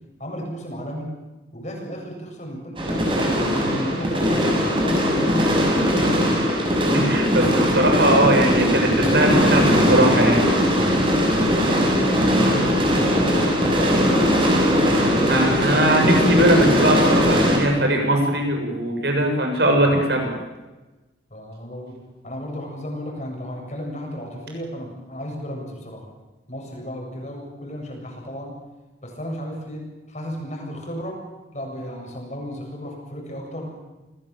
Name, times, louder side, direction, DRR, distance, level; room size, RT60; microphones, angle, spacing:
voice 1, 0.2-1.1 1.5-3.2 3.5-6.1 10.8-14.1 19.7-19.8 21.3-22.0 22.2-26.1 26.5-28.5 29.0-31.2 31.5-33.7, equal, 40° left, 1 dB, 7.5 m, -34 dB
sound 1, 2.8-17.6, equal, 25° right, 6.5 m, -19 dB
voice 2, 6.8-10.5 15.0-20.3, right 1 dB, 60° right, 3 dB, 7.0 m, -20 dB
27.5 x 19.0 x 7.5 m, 1.1 s
head